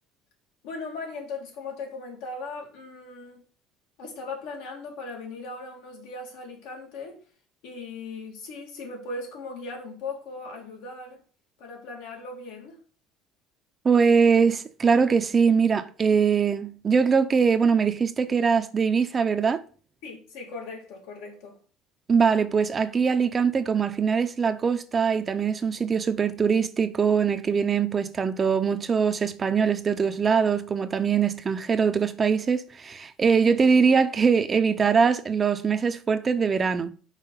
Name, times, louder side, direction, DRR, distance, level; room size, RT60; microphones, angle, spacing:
voice 1, 0.6-3.4 4.0-7.2 7.6-11.2 11.6-12.8 20.0-21.6, left 3 dB, 80° left, 2.5 m, -38 dB
voice 2, 13.8-19.6 22.1-36.9, right 6 dB, 25° right, 0.5 m, -22 dB
5.7 x 4.5 x 5.4 m
cardioid pair, 145°, 0 cm